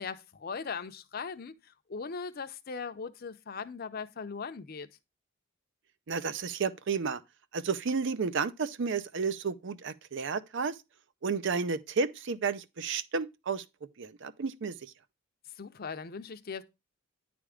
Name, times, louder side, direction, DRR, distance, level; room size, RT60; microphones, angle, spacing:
voice 1, 0.0-4.9 15.6-16.6, left 5 dB, 45° left, 0.6 m, -39 dB
voice 2, 6.1-7.2 7.5-10.8 11.2-13.6 14.0-14.9, right 5 dB, 60° right, 0.5 m, -32 dB
9.9 x 3.5 x 4.9 m
head